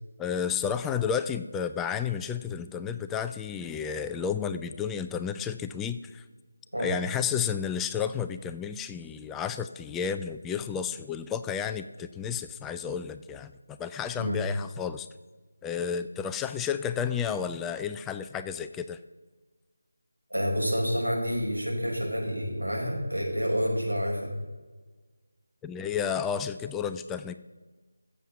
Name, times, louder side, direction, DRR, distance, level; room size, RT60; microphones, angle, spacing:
voice 1, 0.2-6.2 6.8-15.1 15.6-19.0 25.6-27.3, left 7 dB, 5° left, 9 dB, 0.3 m, -32 dB
voice 2, 20.3-24.3, equal, 90° right, -1 dB, 5.4 m, -28 dB
15.0 x 7.4 x 6.9 m, 1.3 s
figure-of-eight pair, 160°, 0 cm